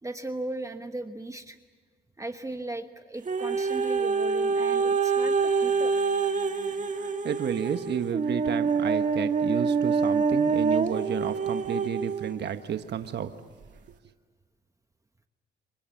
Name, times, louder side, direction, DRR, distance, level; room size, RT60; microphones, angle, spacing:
voice 1, 0.0-1.6 2.2-5.9, right 2 dB, 15° right, 7 dB, 1.2 m, -37 dB
sound 1, 3.3-12.4 13.0-13.1, right 5 dB, 40° right, 1.9 m, -26 dB
voice 2, 6.9-13.3, right 8 dB, 60° right, 8 dB, 1.3 m, -32 dB
27.0 x 24.0 x 7.2 m, 1.5 s
cardioid pair, 90°, 20 cm